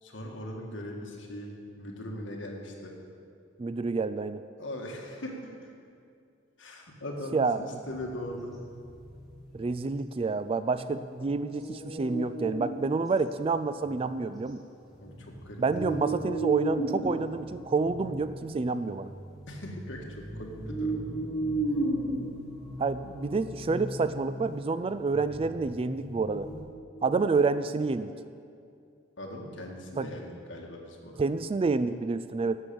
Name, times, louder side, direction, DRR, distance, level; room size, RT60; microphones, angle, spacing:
voice 1, 0.0-2.9 4.6-5.7 6.6-8.5 15.0-16.1 19.5-21.0 29.2-31.2, left 1 dB, 70° left, 0 dB, 1.8 m, -40 dB
voice 2, 3.6-4.4 7.3-7.6 9.5-14.6 15.6-19.1 22.8-26.5 27.0-28.1 30.0-30.1 31.2-32.6, right 4 dB, 30° right, 13 dB, 0.3 m, -28 dB
sound 1, 7.9-9.7 11.4-12.9 13.2-13.3 13.8-14.3 14.8-26.6, right 1 dB, ahead, 3.2 m, -35 dB
11.5 x 7.5 x 6.9 m, 2.4 s
head